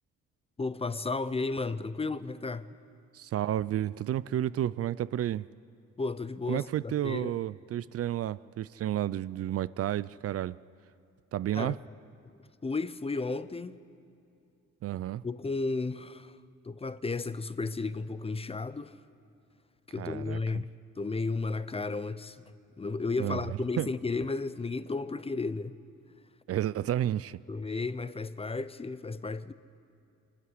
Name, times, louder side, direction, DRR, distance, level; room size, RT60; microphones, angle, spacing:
voice 1, 0.6-2.7 6.0-7.4 11.5-11.8 12.6-13.8 15.2-16.4 16.6-19.0 19.9-20.7 21.0-22.4 22.8-25.8 27.5-29.5, left 3 dB, 20° left, 0.6 m, -33 dB
voice 2, 3.1-5.5 6.5-10.6 11.3-11.8 14.8-15.2 20.0-20.6 23.2-23.4 23.8-23.9 26.5-27.4, right 12 dB, 50° right, 0.4 m, -31 dB
24.5 x 12.5 x 9.8 m
cardioid pair, 90°, 30 cm